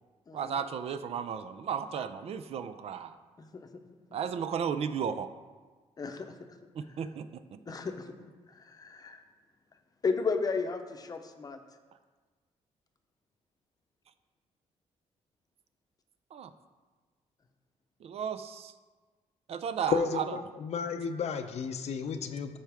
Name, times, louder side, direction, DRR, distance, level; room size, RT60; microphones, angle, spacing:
voice 1, 0.3-3.2 4.1-5.3 6.8-7.4 16.3-16.5 18.0-18.7 19.5-20.4, right 7 dB, 55° right, 11 dB, 0.5 m, -34 dB
voice 2, 3.4-3.7 6.0-6.3 7.7-8.1 8.5-9.2 10.0-11.6, left 4 dB, 30° left, 6 dB, 0.7 m, -34 dB
voice 3, 19.9-22.6, left 6 dB, 65° left, 8 dB, 0.6 m, -32 dB
13.5 x 4.6 x 3.5 m, 1.4 s
cardioid pair, 115°, 12 cm